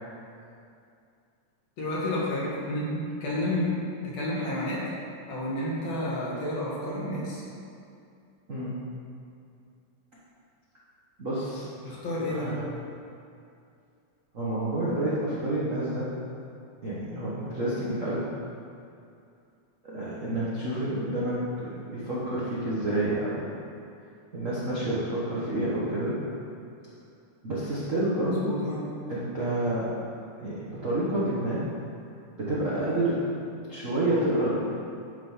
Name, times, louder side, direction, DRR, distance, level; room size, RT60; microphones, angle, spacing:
voice 1, 1.8-3.7 4.1-4.8 5.3-7.4 11.8-12.5 28.2-28.8, left 1 dB, 65° left, -6 dB, 2.9 m, -30 dB
voice 2, 8.5-8.8 11.2-12.6 14.3-16.1 16.8-18.3 19.8-23.5 24.3-26.2 27.4-28.6 29.1-29.9 30.4-31.6 32.4-33.2 33.7-34.5, right 1 dB, 65° right, -8 dB, 0.7 m, -29 dB
11.0 x 3.7 x 5.5 m, 2.5 s
omnidirectional pair, 3.4 m